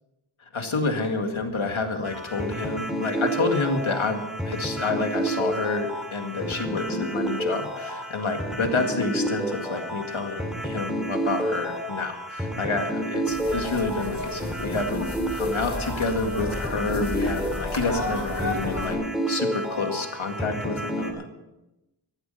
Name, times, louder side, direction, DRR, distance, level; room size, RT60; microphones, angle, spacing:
voice 1, 0.5-15.1 15.3-19.0 19.3-21.3, left 3 dB, 85° left, 4 dB, 2.0 m, -28 dB
sound 1, 2.0-21.1, right 1 dB, ahead, 2.6 m, -30 dB
sound 2, 13.3-19.0, left 2 dB, 35° left, 3.6 m, -33 dB
14.5 x 12.0 x 5.7 m, 0.97 s
wide cardioid pair, 60°, 46 cm